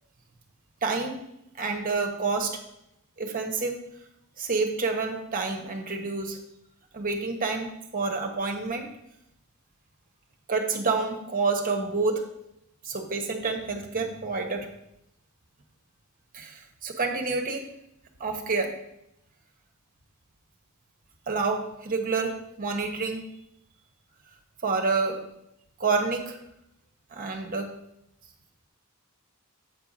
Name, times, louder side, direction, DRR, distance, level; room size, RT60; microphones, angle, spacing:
voice 1, 0.8-1.2 1.6-2.6 3.2-3.8 4.4-6.4 6.9-8.9 10.5-12.2 12.8-14.7 16.3-17.6 18.2-18.7 21.3-23.3 24.6-25.2 25.8-26.4 27.1-27.7, right 4 dB, 40° right, 3 dB, 1.1 m, -28 dB
7.9 x 4.5 x 5.3 m, 0.80 s
head